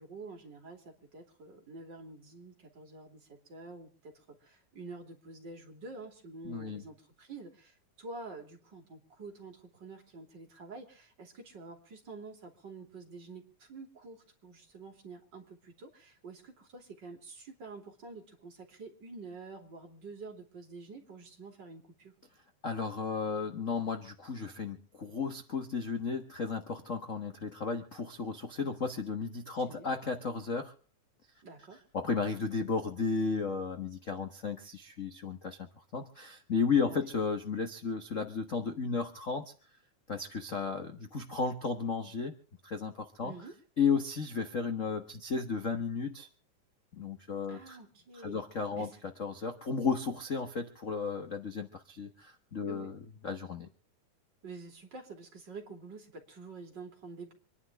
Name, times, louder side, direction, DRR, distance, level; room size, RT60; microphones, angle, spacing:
voice 1, 0.0-22.1 29.7-29.9 31.4-31.8 36.8-37.1 43.2-43.5 47.5-48.5 48.8-49.0 52.7-52.9 54.4-57.3, right 3 dB, 35° right, 2 dB, 3.4 m, -48 dB
voice 2, 6.4-6.8 22.6-30.7 31.9-35.6 35.9-39.5 40.1-42.3 42.6-43.3 43.8-46.3 46.9-47.8 48.2-48.9 49.2-53.0 53.2-53.7, left 5 dB, 50° left, 6 dB, 0.9 m, -34 dB
26.5 x 11.0 x 3.6 m, 0.41 s
omnidirectional pair, 3.4 m